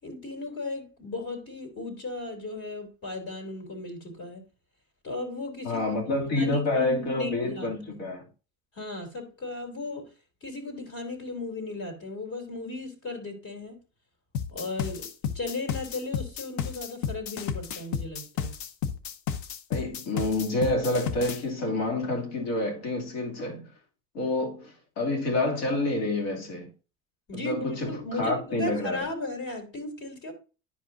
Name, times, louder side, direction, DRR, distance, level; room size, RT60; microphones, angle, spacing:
voice 1, 0.0-4.4 5.0-5.8 6.3-7.7 8.7-10.1 10.4-13.8 14.5-15.1 15.3-18.5 27.3-30.3, left 2 dB, 45° left, 3.0 m, -36 dB
voice 2, 5.6-8.2 19.7-23.7 24.1-26.7 27.3-27.9 28.2-29.0, left 2 dB, 80° left, 2.7 m, -28 dB
sound 1, 14.3-21.4, left 8 dB, 65° left, 0.8 m, -32 dB
10.5 x 5.0 x 2.6 m
supercardioid pair, 105°, 31 cm